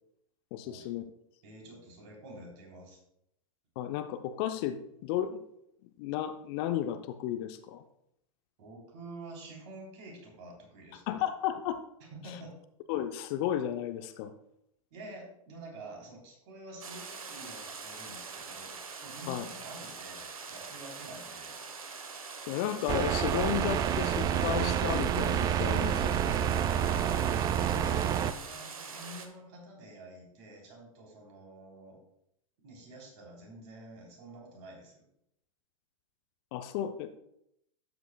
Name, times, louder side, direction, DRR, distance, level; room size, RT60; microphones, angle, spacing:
voice 1, 0.5-1.1 3.8-5.4 6.0-7.8 11.1-11.8 12.9-14.3 19.3-19.5 22.5-26.1 36.5-37.2, left 10 dB, 45° left, 10 dB, 0.6 m, -33 dB
voice 2, 1.4-3.0 8.6-11.0 12.1-12.5 14.9-21.6 25.7-32.0 32.6-35.1, right 1 dB, 50° right, -1 dB, 3.7 m, -48 dB
sound 1, 16.8-29.3, right 5 dB, 75° right, 1.1 m, -44 dB
sound 2, 22.9-28.3, right 9 dB, 20° right, 0.4 m, -28 dB
12.0 x 8.0 x 2.3 m, 0.77 s
figure-of-eight pair, 100°, 18 cm